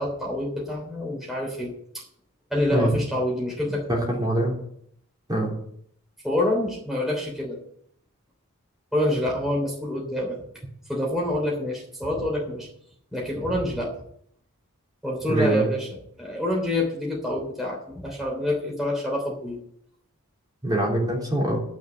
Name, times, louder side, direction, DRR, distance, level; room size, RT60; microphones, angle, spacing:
voice 1, 0.0-2.0 2.5-4.2 6.2-7.6 8.9-10.4 10.9-12.7 13.1-13.9 15.0-19.6, left 1 dB, ahead, -3 dB, 3.2 m, -27 dB
voice 2, 3.9-4.5 5.3-5.5 15.3-15.7 20.6-21.6, right 1 dB, 20° right, -3 dB, 3.5 m, -23 dB
12.0 x 6.4 x 8.3 m, 0.68 s
head